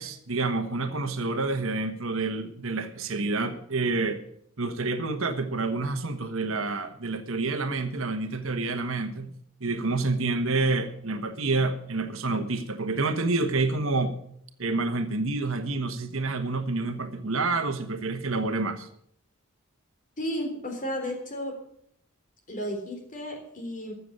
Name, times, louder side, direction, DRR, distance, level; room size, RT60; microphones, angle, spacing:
voice 1, 0.0-4.2 4.6-9.3 9.6-14.2 14.6-18.9, right 3 dB, 65° right, 8 dB, 1.3 m, -28 dB
voice 2, 20.2-21.5 22.5-23.9, equal, 40° left, 3 dB, 3.6 m, -33 dB
14.5 x 7.0 x 8.7 m, 0.68 s
head